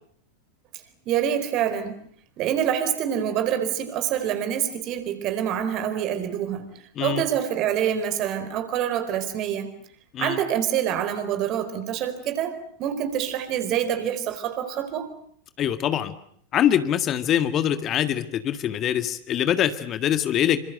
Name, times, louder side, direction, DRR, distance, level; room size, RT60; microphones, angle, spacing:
voice 1, 1.1-2.0 2.4-6.7 7.0-9.7 10.2-15.1, right 9 dB, 35° right, 4.4 m, -26 dB
voice 2, 15.6-16.1 16.5-20.6, left 10 dB, 30° left, 1.8 m, -23 dB
28.0 x 25.5 x 7.9 m
figure-of-eight pair, 90°, 0 cm